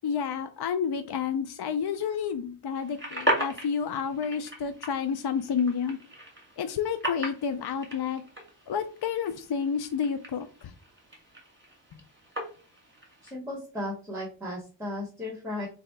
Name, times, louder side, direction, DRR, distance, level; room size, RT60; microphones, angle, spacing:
voice 1, 0.0-6.0 6.6-8.2 8.7-10.7, left 7 dB, 60° left, 9 dB, 0.5 m, -30 dB
sound 1, 2.8-13.3, equal, 25° right, 1.7 m, -37 dB
voice 2, 13.2-15.7, left 1 dB, 5° right, -4 dB, 1.4 m, -35 dB
3.1 x 2.7 x 4.5 m, 0.36 s
wide cardioid pair, 75°, 44 cm